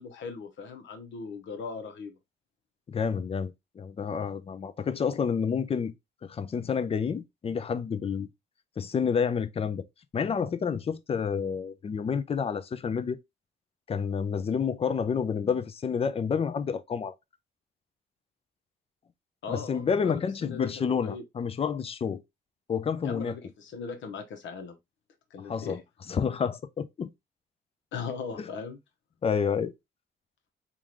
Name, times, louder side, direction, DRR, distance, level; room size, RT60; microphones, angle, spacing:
voice 1, 0.0-2.2 19.4-21.2 23.0-24.8 25.3-25.8 27.9-28.8, left 5 dB, 75° left, 1.0 m, -39 dB
voice 2, 2.9-5.9 6.2-8.3 8.8-9.8 10.1-13.2 13.9-17.1 19.5-22.2 22.7-23.3 25.5-25.8 26.1-27.1 28.4-28.5 29.2-29.7, left 6 dB, 30° left, 0.4 m, -29 dB
3.7 x 2.4 x 3.0 m
cardioid pair, 90°, 20 cm